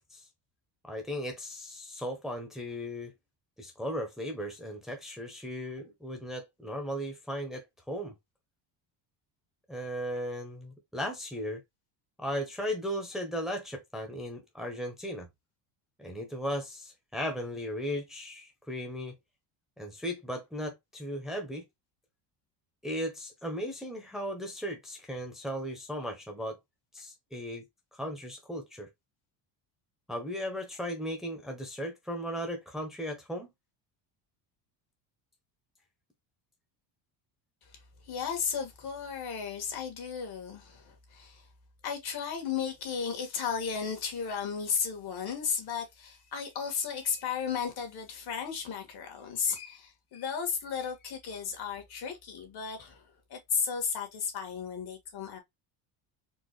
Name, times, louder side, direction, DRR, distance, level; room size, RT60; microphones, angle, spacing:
voice 1, 0.8-3.1 3.6-8.1 9.7-11.6 12.2-15.3 16.0-19.1 19.8-21.6 22.8-26.6 26.9-27.6 27.9-28.9 30.1-33.5, equal, ahead, 1.0 m, -36 dB
voice 2, 38.1-41.4 41.8-53.0 53.3-55.4, left 6 dB, 55° left, 1.9 m, -34 dB
4.5 x 2.5 x 3.2 m
cardioid pair, 120°, 46 cm